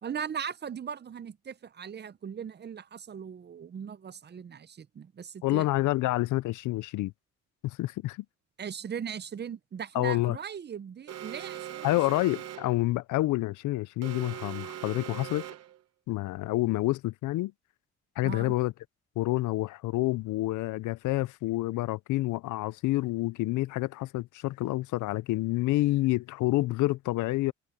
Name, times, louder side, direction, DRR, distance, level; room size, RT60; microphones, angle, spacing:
voice 1, 0.0-5.7 8.6-12.0 18.2-18.5, right 7 dB, 35° right, 0.6 m, -39 dB
voice 2, 5.4-7.1 7.6-8.2 9.9-10.4 11.8-15.4 16.1-17.5 18.2-18.7 19.2-27.5, left 18 dB, 85° left, 0.6 m, -28 dB
Alarm, 11.1-12.8 14.0-15.8, right 11 dB, 55° right, 0.9 m, -41 dB
cardioid pair, 90°, 30 cm